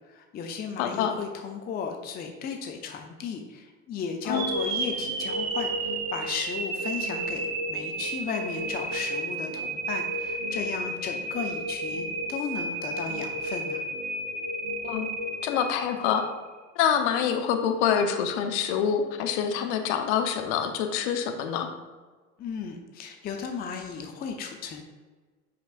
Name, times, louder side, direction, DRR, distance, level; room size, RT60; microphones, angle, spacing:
voice 1, 0.1-13.8 22.4-24.8, left 6 dB, 20° left, 4 dB, 0.6 m, -35 dB
voice 2, 0.8-1.1 4.3-4.5 14.8-15.1 15.4-16.2 16.8-21.7, left 8 dB, 50° left, 5 dB, 0.9 m, -26 dB
sound 1, 4.3-16.4, right 2 dB, 35° right, 1.1 m, -32 dB
8.4 x 5.9 x 2.5 m, 1.4 s
figure-of-eight pair, 80°, 45 cm